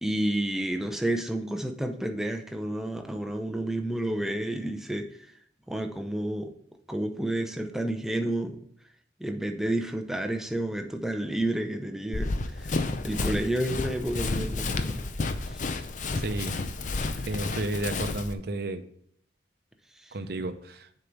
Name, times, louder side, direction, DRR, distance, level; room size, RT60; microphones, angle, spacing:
voice 1, 0.0-5.1 5.7-6.5 6.9-8.6 9.2-12.7 13.0-15.1 20.0-20.1, right 1 dB, ahead, 4 dB, 0.6 m, -30 dB
Run, 12.1-18.3, left 3 dB, 45° left, 0.5 m, -31 dB
voice 2, 16.2-16.5 17.3-18.8 20.1-20.8, right 2 dB, 60° right, 9 dB, 0.7 m, -32 dB
6.8 x 4.6 x 5.3 m, 0.67 s
head